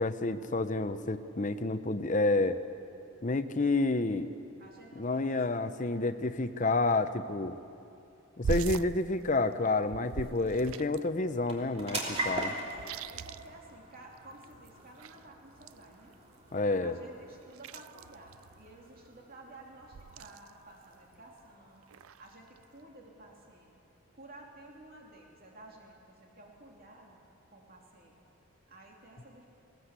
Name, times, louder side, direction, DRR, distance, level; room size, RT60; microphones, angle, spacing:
voice 1, 0.0-2.6 3.2-4.3 5.0-7.5 8.4-12.5 16.5-17.0, left 2 dB, 35° left, 10 dB, 0.8 m, -29 dB
voice 2, 4.6-6.1 12.6-16.2 16.8-21.9 22.2-23.7 24.1-27.2 27.5-28.2 28.7-29.5, right 2 dB, 45° right, -1 dB, 2.8 m, -53 dB
sound 1, 8.4-11.2 11.5-11.6 11.7-14.2 14.4-16.5 17.0-19.2 19.8-20.7 21.1-21.5 21.8-22.8, right 6 dB, 80° right, 0.4 m, -41 dB
sound 2, 8.8-23.3, right 1 dB, 30° right, 3.0 m, -44 dB
20.0 x 19.0 x 8.2 m, 2.6 s
head